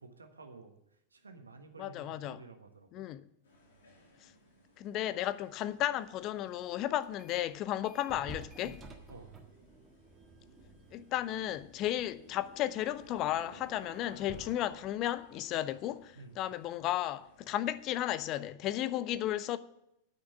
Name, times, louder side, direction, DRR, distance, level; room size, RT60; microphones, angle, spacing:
voice 1, 0.0-3.1 9.1-9.3 16.1-16.4, right 3 dB, 75° right, 1.3 m, -52 dB
voice 2, 1.8-2.4 2.9-3.2 4.2-4.3 4.8-8.8 10.9-19.6, left 13 dB, 35° left, 0.6 m, -34 dB
sound 1, 3.4-18.2, left 1 dB, 65° left, 2.8 m, -60 dB
sound 2, 7.0-7.5 7.8-16.3, right 1 dB, 20° right, 1.6 m, -53 dB
9.4 x 6.0 x 8.5 m
figure-of-eight pair, 90°, 0 cm